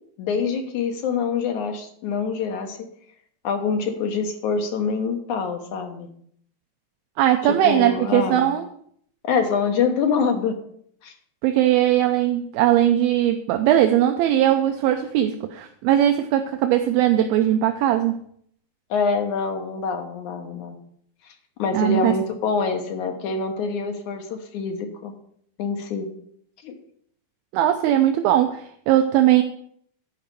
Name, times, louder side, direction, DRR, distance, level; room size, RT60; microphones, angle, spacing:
voice 1, 0.2-2.8 3.4-6.1 7.4-8.5 9.2-10.6 11.0-11.1 18.9-20.8 21.6-25.1 25.6-26.1 26.6-26.8, left 5 dB, 65° left, 4 dB, 2.2 m, -25 dB
voice 2, 7.2-8.7 11.4-18.1 21.7-22.2 27.5-29.4, right 12 dB, 80° right, 6 dB, 2.4 m, -19 dB
11.0 x 5.1 x 6.8 m, 0.65 s
omnidirectional pair, 4.4 m